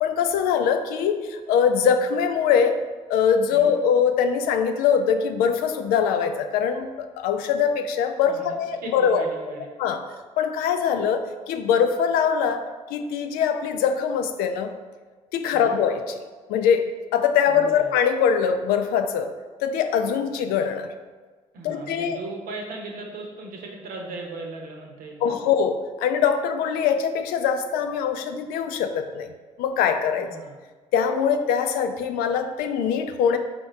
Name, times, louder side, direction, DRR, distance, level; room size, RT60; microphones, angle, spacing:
voice 1, 0.0-2.8 3.1-9.2 9.8-10.0 10.4-14.7 15.3-16.2 16.5-19.3 19.6-20.9 21.6-22.2 25.2-29.3 29.6-30.3 30.9-33.4, left 7 dB, 65° left, 7 dB, 0.4 m, -22 dB
voice 2, 8.8-9.7 15.5-15.8 17.4-17.9 21.5-25.4 30.1-30.5, right 3 dB, 60° right, 0 dB, 0.9 m, -37 dB
4.3 x 2.7 x 4.4 m, 1.4 s
hypercardioid pair, 50°, 16 cm